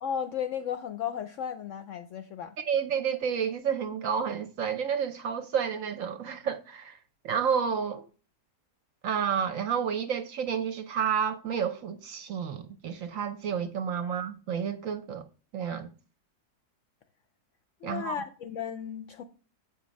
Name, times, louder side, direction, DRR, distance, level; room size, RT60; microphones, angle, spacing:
voice 1, 0.0-2.6 14.0-14.1 17.8-19.2, left 8 dB, 70° left, 0.7 m, -35 dB
voice 2, 2.6-7.0 7.2-8.1 9.0-15.3 15.5-15.9 17.8-18.2, right 7 dB, 65° right, 0.9 m, -30 dB
7.4 x 4.4 x 5.1 m
omnidirectional pair, 1.7 m